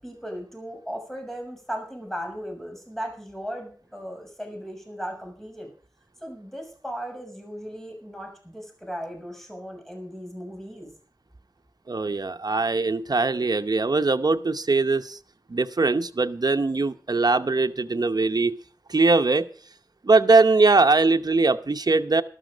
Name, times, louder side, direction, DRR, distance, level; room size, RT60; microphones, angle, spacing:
voice 1, 0.0-5.7 6.2-10.9, equal, 5° left, 3 dB, 6.4 m, -37 dB
voice 2, 11.9-15.2 15.5-18.6 18.9-19.5 20.0-22.2, right 3 dB, 70° right, 8 dB, 0.8 m, -21 dB
13.0 x 12.5 x 5.1 m, 0.41 s
wide cardioid pair, 40°, 7 cm